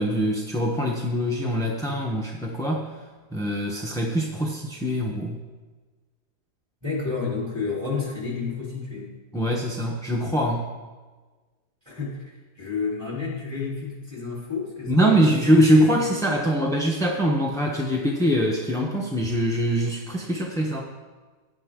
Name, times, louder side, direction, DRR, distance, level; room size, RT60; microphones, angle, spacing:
voice 1, 0.0-2.9 3.3-5.4 9.3-10.7 14.9-20.9, equal, 5° left, -1 dB, 0.6 m, -23 dB
voice 2, 6.8-9.1 11.8-15.3 15.9-16.0, left 4 dB, 15° right, -3 dB, 3.2 m, -30 dB
16.0 x 9.6 x 3.7 m, 1.3 s
omnidirectional pair, 1.8 m